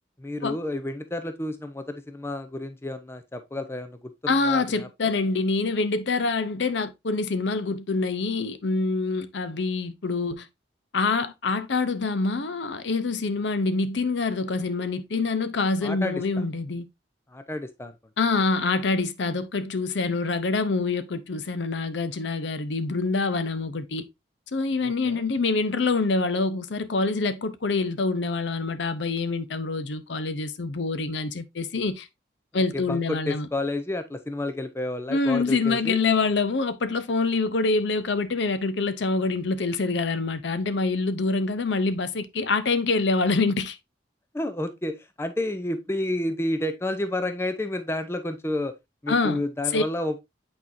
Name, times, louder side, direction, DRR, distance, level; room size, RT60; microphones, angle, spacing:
voice 1, 0.2-5.1 15.8-16.2 17.3-17.9 24.8-25.2 32.5-36.0 44.3-48.8 49.0-50.2, left 1 dB, 15° left, 0.5 m, -30 dB
voice 2, 4.3-10.5 10.9-16.9 18.2-24.0 24.5-32.1 32.5-33.5 35.1-43.8 49.1-49.4 49.7-49.8, left 3 dB, 70° left, 0.6 m, -26 dB
8.4 x 4.4 x 2.6 m
head